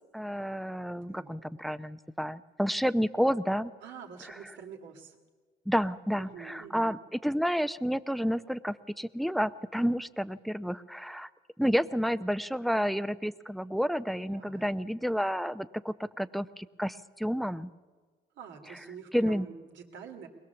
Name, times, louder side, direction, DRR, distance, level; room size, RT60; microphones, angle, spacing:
voice 1, 0.1-3.7 5.7-7.0 7.2-11.3 11.6-17.7 19.1-19.5, equal, ahead, 13 dB, 0.6 m, -30 dB
voice 2, 1.1-1.5 3.8-5.2 6.1-7.0 14.3-14.6 18.3-20.3, right 6 dB, 80° right, 3 dB, 2.6 m, -46 dB
22.0 x 20.5 x 7.0 m, 1.4 s
cardioid pair, 100°, 19 cm